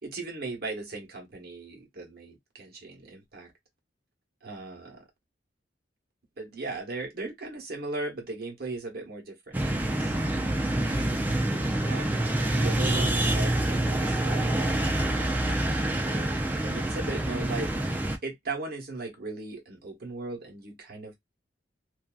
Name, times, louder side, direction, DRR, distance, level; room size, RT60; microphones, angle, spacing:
voice 1, 0.0-3.5 4.4-5.1 6.4-10.1 11.8-14.8 16.6-17.9 18.2-21.1, right 3 dB, 55° right, 1.0 m, -38 dB
sound 1, 9.5-18.2, right 1 dB, 10° right, 0.4 m, -27 dB
2.6 x 2.3 x 2.3 m
head